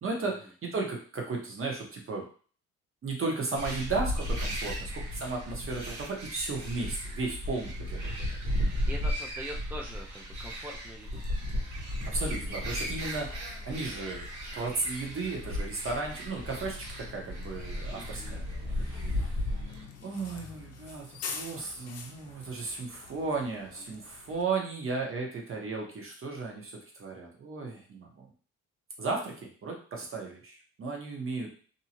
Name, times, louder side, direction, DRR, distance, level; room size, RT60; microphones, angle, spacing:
voice 1, 0.0-2.3 3.0-8.4 12.0-13.3 13.7-14.2 14.5-19.4 20.0-28.3 29.0-31.5, right 3 dB, 45° right, 0 dB, 1.0 m, -35 dB
sound 1, 3.5-19.8, equal, 75° right, 1.1 m, -35 dB
voice 2, 8.9-11.6 17.9-18.4, equal, 5° right, 0 dB, 0.3 m, -43 dB
Bus, 11.1-24.4, left 5 dB, 55° left, 0.6 m, -46 dB
2.7 x 2.2 x 2.9 m, 0.42 s
cardioid pair, 90°, 30 cm